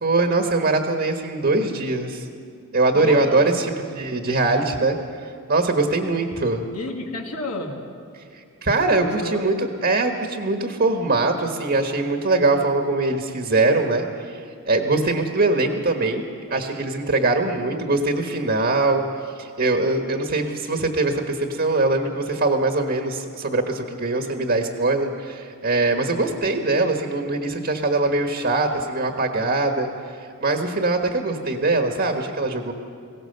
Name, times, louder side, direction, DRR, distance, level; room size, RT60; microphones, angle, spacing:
voice 1, 0.0-2.3 2.7-3.6 3.9-6.6 8.3-16.2 16.5-29.9 30.2-32.7, right 2 dB, 45° right, 4 dB, 1.3 m, -22 dB
voice 2, 2.9-3.5 6.7-7.8 9.0-9.4, left 2 dB, 75° left, 1 dB, 1.8 m, -31 dB
22.5 x 17.5 x 6.7 m, 2.4 s
head